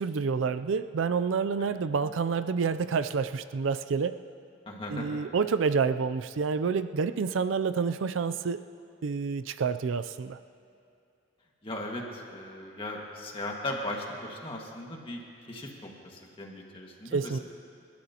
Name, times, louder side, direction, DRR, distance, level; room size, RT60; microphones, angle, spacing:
voice 1, 0.0-4.2 4.9-8.6 9.0-10.4 17.1-17.4, right 5 dB, 85° right, 11 dB, 0.4 m, -28 dB
voice 2, 4.7-5.1 11.6-15.2 15.5-17.4, left 1 dB, 30° left, -1 dB, 1.8 m, -38 dB
29.5 x 13.0 x 2.9 m, 2.6 s
head